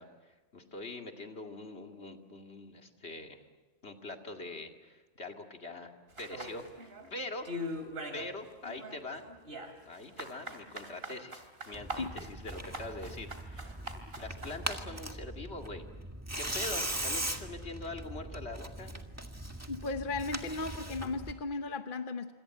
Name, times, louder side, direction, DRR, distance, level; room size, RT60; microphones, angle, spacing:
voice 1, 0.0-3.4 3.8-5.9 6.2-7.5 8.1-9.2 9.9-13.7 14.2-15.8 16.4-18.9, left 2 dB, 80° left, 4 dB, 2.6 m, -43 dB
sound 1, 6.2-7.1 7.4-8.3 8.6-14.9, equal, 65° right, 3.0 m, -42 dB
Tearing, 11.7-21.3, right 1 dB, 15° right, 1.8 m, -40 dB
voice 2, 19.7-22.3, left 3 dB, 55° left, 7 dB, 1.2 m, -36 dB
27.0 x 26.5 x 7.7 m, 1.2 s
omnidirectional pair, 1.1 m